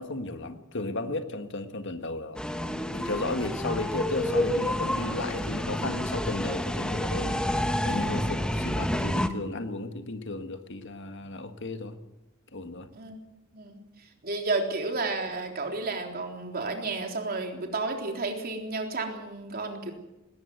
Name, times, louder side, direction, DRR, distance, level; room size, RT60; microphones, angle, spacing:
voice 1, 0.0-2.4 2.9-7.4 7.9-12.0 12.5-12.9, left 2 dB, 60° left, 8 dB, 1.7 m, -34 dB
sound 1, 2.4-9.3, equal, 5° left, 1.2 m, -29 dB
voice 2, 14.2-19.9, right 3 dB, 45° right, 3 dB, 3.7 m, -31 dB
20.0 x 18.0 x 7.9 m, 0.96 s
head